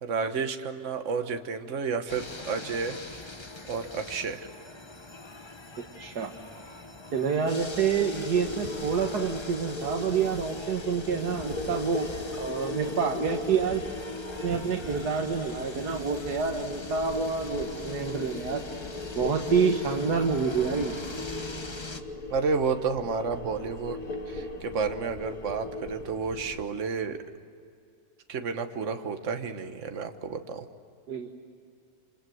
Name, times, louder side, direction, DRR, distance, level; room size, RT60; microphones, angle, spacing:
voice 1, 0.0-3.0 3.7-4.5 22.3-27.2 28.3-30.7, right 5 dB, 50° right, 7 dB, 1.6 m, -31 dB
sound 1, 2.1-22.0, left 2 dB, 20° left, 1.1 m, -42 dB
voice 2, 6.0-6.3 7.1-12.1 12.3-13.9 14.4-18.6 19.2-21.0 31.1-31.4, right 6 dB, 80° right, 3 dB, 2.0 m, -28 dB
sound 2, 7.6-26.6, left 2 dB, 80° left, 3.3 m, -38 dB
28.5 x 26.5 x 7.9 m, 2.4 s
omnidirectional pair, 1.7 m